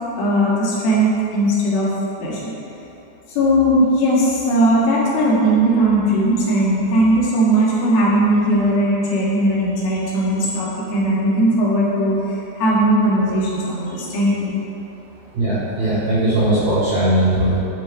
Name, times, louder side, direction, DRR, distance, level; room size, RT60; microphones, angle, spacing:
voice 1, 0.2-1.9 2.2-2.5 3.4-14.5, right 1 dB, 65° left, -7 dB, 3.4 m, -18 dB
voice 2, 15.3-17.6, right 1 dB, 65° right, -14 dB, 3.7 m, -18 dB
9.1 x 7.6 x 3.4 m, 2.9 s
omnidirectional pair, 5.0 m